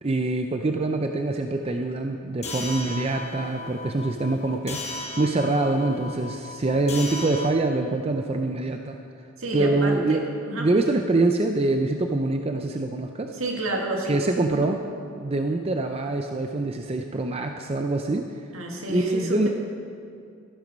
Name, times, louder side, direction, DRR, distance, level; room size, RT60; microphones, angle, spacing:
voice 1, 0.0-9.0 9.5-10.3 10.6-13.3 14.1-14.8 15.1-18.3 18.9-19.5, right 2 dB, 25° right, 5 dB, 0.5 m, -25 dB
sound 1, 2.4-7.5, left 2 dB, 30° left, 1.2 m, -36 dB
voice 2, 9.4-10.2 10.5-10.7 13.3-14.7 18.5-19.5, right 1 dB, 70° right, 0 dB, 2.0 m, -30 dB
13.5 x 11.5 x 5.2 m, 2.4 s
head